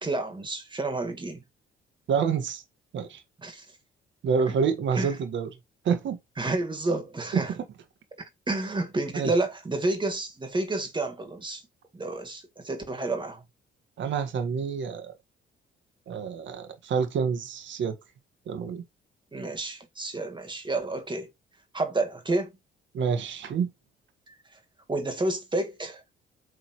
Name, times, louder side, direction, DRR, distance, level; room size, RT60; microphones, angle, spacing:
voice 1, 0.0-1.4 3.4-3.7 4.9-5.1 6.4-7.5 8.5-11.6 11.9-13.4 19.3-21.3 21.7-22.5 24.3-24.4 24.9-26.0, right 2 dB, 25° right, 2.1 m, -30 dB
voice 2, 2.1-2.6 2.9-3.2 4.2-5.5 5.8-6.2 7.3-7.4 9.1-9.3 14.0-15.1 16.1-18.0 18.5-18.8 22.9-23.7, right 6 dB, 70° right, 1.6 m, -27 dB
7.7 x 3.8 x 3.2 m
cardioid pair, 90°, 20 cm